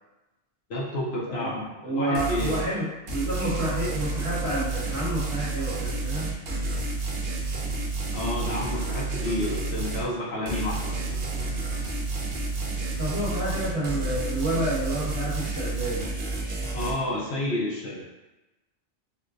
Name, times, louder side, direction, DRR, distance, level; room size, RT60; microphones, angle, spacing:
voice 1, 0.7-2.6 8.1-11.5 16.7-18.0, left 1 dB, 65° left, -4 dB, 0.9 m, -30 dB
voice 2, 1.8-6.3 13.0-16.0, right 1 dB, 30° right, -9 dB, 1.1 m, -29 dB
sound 1, 2.1-2.7 3.1-10.1 10.5-16.9, right 3 dB, 65° right, 0.9 m, -30 dB
4.4 x 2.1 x 2.5 m, 1.0 s
omnidirectional pair, 1.2 m